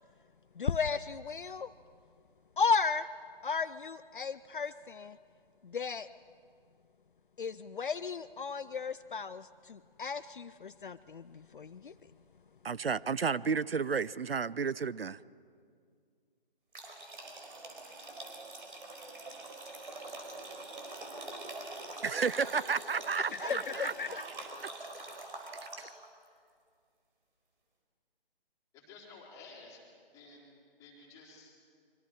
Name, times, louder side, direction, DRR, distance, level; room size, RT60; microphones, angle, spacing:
voice 1, 0.6-1.7 2.6-3.1 3.4-5.2 5.6-6.1 7.4-11.9 23.4-24.2, left 5 dB, 60° left, 14 dB, 0.6 m, -34 dB
voice 2, 12.6-15.2 22.0-24.3 25.8-25.9, right 5 dB, 80° right, 19 dB, 0.6 m, -32 dB
sound 1, 16.7-26.1, right 2 dB, 60° right, 4.4 m, -44 dB
voice 3, 28.7-29.8 30.1-30.5 30.8-31.6, left 4 dB, 10° left, -4 dB, 3.9 m, -53 dB
25.5 x 24.0 x 4.8 m, 2.1 s
figure-of-eight pair, 145°, 29 cm